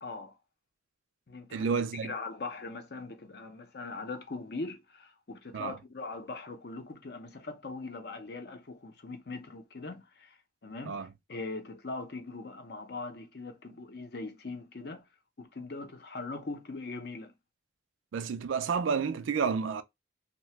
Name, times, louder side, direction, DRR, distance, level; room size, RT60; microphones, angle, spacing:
voice 1, 0.0-0.3 1.3-1.7 2.0-10.4 10.6-15.0 15.4-17.3, left 3 dB, 55° left, 0.6 m, -41 dB
voice 2, 1.5-2.1 5.5-5.7 10.9-11.1 18.1-19.8, right 6 dB, 85° right, 0.4 m, -30 dB
2.8 x 2.2 x 3.2 m
head